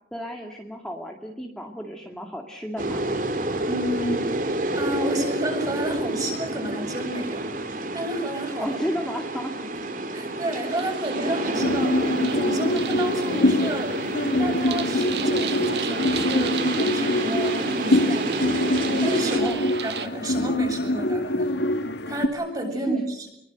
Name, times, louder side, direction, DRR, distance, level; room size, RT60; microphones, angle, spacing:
voice 1, 0.1-3.0 8.6-9.5 19.4-19.7 22.9-23.0, equal, 5° left, 1 dB, 2.2 m, -32 dB
sound 1, 2.8-19.4, right 2 dB, 50° right, 2.8 m, -29 dB
voice 2, 3.6-4.3 4.8-7.5 7.9-8.8 10.1-11.9 12.3-13.9 14.4-18.4 19.0-19.6 19.8-21.5 22.1-23.3, right 1 dB, 20° right, 3 dB, 7.4 m, -30 dB
sound 2, 10.7-20.1, right 8 dB, 70° right, 1.9 m, -36 dB
sound 3, 11.5-22.3, left 1 dB, 80° left, 1.7 m, -24 dB
25.5 x 23.0 x 8.0 m, 0.74 s
head